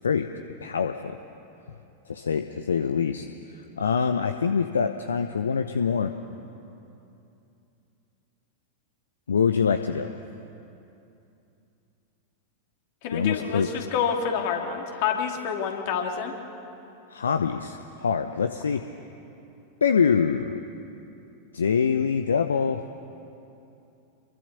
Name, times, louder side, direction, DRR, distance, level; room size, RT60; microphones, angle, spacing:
voice 1, 0.6-1.2 2.1-3.3 3.8-6.1 9.3-10.1 13.1-13.7 17.1-18.8 19.8-20.6 21.5-22.8, left 6 dB, 70° left, 8 dB, 0.8 m, -24 dB
voice 2, 13.0-16.3, left 7 dB, 50° left, 2 dB, 2.9 m, -28 dB
26.5 x 23.0 x 6.9 m, 2.8 s
figure-of-eight pair, 90°, 0 cm